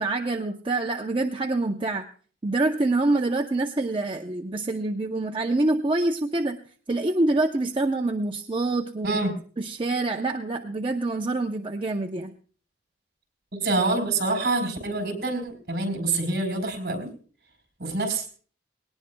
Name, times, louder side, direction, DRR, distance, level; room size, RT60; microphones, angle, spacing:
voice 1, 0.0-2.1 2.4-6.6 6.9-9.2 9.6-12.3, right 2 dB, 30° right, 2 dB, 0.6 m, -26 dB
voice 2, 9.0-9.3 13.5-17.1 17.8-18.3, right 2 dB, 55° right, 4 dB, 4.0 m, -26 dB
19.0 x 18.5 x 2.2 m, 0.43 s
head